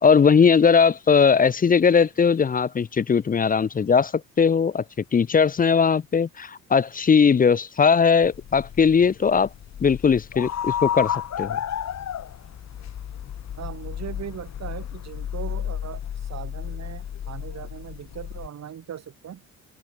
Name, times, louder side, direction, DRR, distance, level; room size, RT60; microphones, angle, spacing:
voice 1, 0.0-4.1 4.4-4.8 5.1-9.5 9.8-11.6, left 6 dB, 25° left, 0.6 m, -19 dB
sound 1, 8.2-18.5, left 9 dB, 55° left, 5.3 m, -32 dB
voice 2, 13.6-19.4, right 9 dB, 55° right, 6.6 m, -39 dB
open air
cardioid pair, 85°, 32 cm